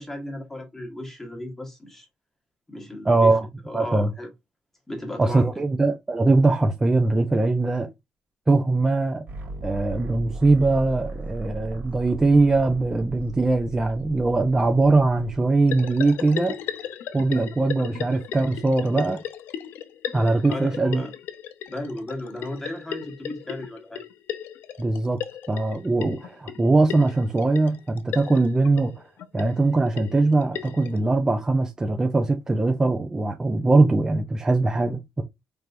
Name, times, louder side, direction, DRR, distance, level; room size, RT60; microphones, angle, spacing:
voice 1, 0.0-2.1 2.7-3.3 3.6-4.3 4.9-5.5 20.5-21.1 21.7-24.0, left 1 dB, 10° left, 1.2 m, -35 dB
voice 2, 3.0-3.5 3.7-4.1 5.2-7.9 8.5-9.2 9.6-16.6 17.1-19.2 20.1-21.0 24.8-25.2 25.5-28.9 29.3-35.2, right 3 dB, 15° right, 0.5 m, -21 dB
sound 1, 9.3-16.1, right 2 dB, 50° right, 1.8 m, -38 dB
sound 2, 15.7-31.0, left 10 dB, 80° left, 0.6 m, -36 dB
4.5 x 3.3 x 2.5 m
cardioid pair, 140°, 3 cm